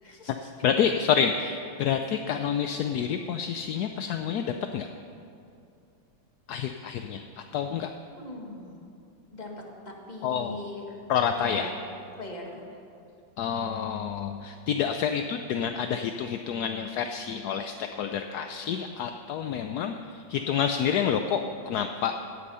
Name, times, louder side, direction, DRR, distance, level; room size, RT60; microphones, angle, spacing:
voice 1, 0.0-0.5 1.2-1.3 8.1-8.9 9.3-9.5 9.9-11.0 11.4-11.7 12.2-12.8, left 2 dB, 20° left, -1 dB, 1.9 m, -41 dB
voice 2, 0.6-4.9 6.5-7.2 7.5-7.9 10.2-10.5 11.1-11.6 13.4-22.1, left 7 dB, 70° left, 7 dB, 0.9 m, -28 dB
17.5 x 10.0 x 5.6 m, 2.7 s
omnidirectional pair, 2.1 m